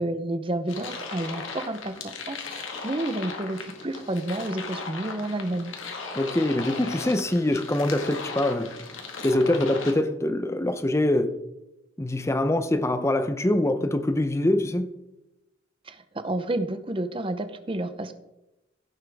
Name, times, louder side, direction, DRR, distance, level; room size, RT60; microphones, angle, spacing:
voice 1, 0.0-5.7 15.9-18.1, right 1 dB, 25° right, 0.8 m, -30 dB
sound 1, 0.7-9.9, left 4 dB, 80° left, 1.8 m, -37 dB
voice 2, 6.1-8.7 9.2-11.4 12.0-15.0, left 1 dB, 15° left, 0.6 m, -24 dB
16.0 x 7.3 x 3.5 m
head